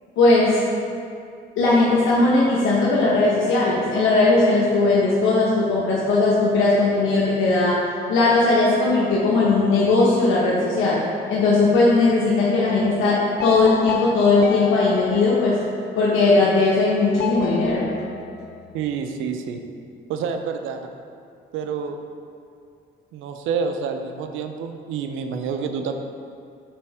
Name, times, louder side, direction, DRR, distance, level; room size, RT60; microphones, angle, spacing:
voice 1, 0.2-0.6 1.6-7.8 8.1-11.0 11.3-15.6 16.0-18.0, left 3 dB, 90° left, -6 dB, 0.9 m, -18 dB
sound 1, 13.4-16.1 17.2-18.9, left 7 dB, 55° left, 0.5 m, -32 dB
voice 2, 18.7-19.6 20.1-20.9 21.5-22.0 23.1-25.9, right 6 dB, 90° right, 6 dB, 0.5 m, -28 dB
6.1 x 4.3 x 4.7 m, 2.4 s
cardioid pair, 90°, 20 cm